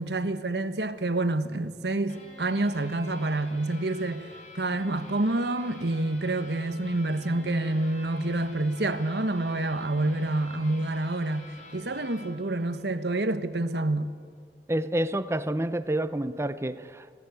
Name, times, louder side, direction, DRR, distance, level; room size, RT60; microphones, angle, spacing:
voice 1, 0.0-14.1, right 2 dB, 75° right, 1.3 m, -28 dB
sound 1, 2.1-13.4, left 1 dB, 45° left, 5.3 m, -48 dB
voice 2, 14.7-17.2, right 1 dB, 15° right, 0.7 m, -29 dB
25.5 x 16.5 x 9.3 m
head